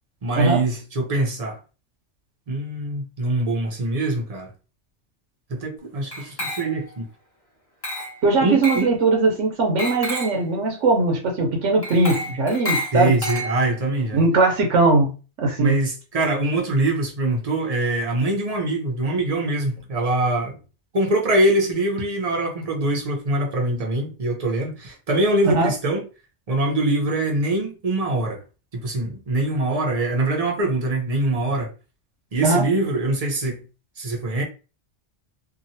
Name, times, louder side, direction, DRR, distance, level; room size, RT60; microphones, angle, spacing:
voice 1, 0.2-1.6 2.5-4.5 5.5-7.1 8.4-8.9 12.9-14.2 15.6-20.6 20.9-26.0 26.5-28.4 28.7-31.7 32.3-33.6 34.0-34.4, right 2 dB, 40° right, 0.6 m, -23 dB
Glass, 6.1-7.0 7.8-8.2 8.6-8.9 9.8-10.4 11.8-13.9, equal, 20° left, 0.9 m, -30 dB
voice 2, 8.2-13.2 14.1-15.8 25.4-25.7 32.4-32.6, right 3 dB, 80° right, 1.1 m, -20 dB
2.9 x 2.4 x 2.7 m
omnidirectional pair, 1.2 m